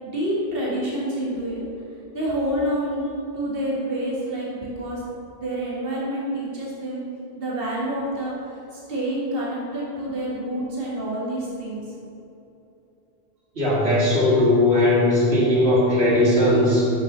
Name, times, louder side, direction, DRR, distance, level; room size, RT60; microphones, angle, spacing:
voice 1, 0.0-1.6 2.1-5.0 5.4-7.0 7.4-11.9, right 1 dB, 60° right, -6 dB, 2.2 m, -28 dB
voice 2, 13.6-16.9, left 1 dB, 80° right, -6 dB, 2.4 m, -18 dB
8.2 x 6.7 x 6.8 m, 2.8 s
omnidirectional pair, 1.1 m